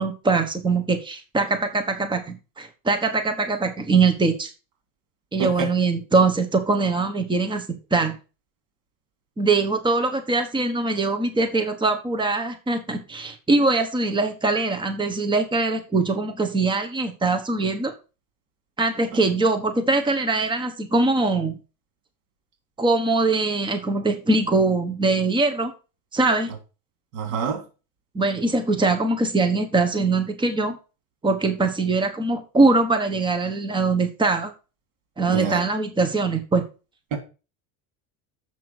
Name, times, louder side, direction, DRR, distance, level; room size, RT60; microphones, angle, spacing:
voice 1, 0.0-4.5 5.3-8.2 9.4-17.9 18.8-21.6 22.8-25.7 26.1-26.5 28.1-30.8 31.2-34.5 35.2-36.7, right 3 dB, 10° right, 1.2 m, -22 dB
voice 2, 27.1-27.6 35.3-35.6 37.1-37.2, right 6 dB, 80° right, 3.4 m, -26 dB
7.5 x 6.1 x 6.1 m
cardioid pair, 135°, 41 cm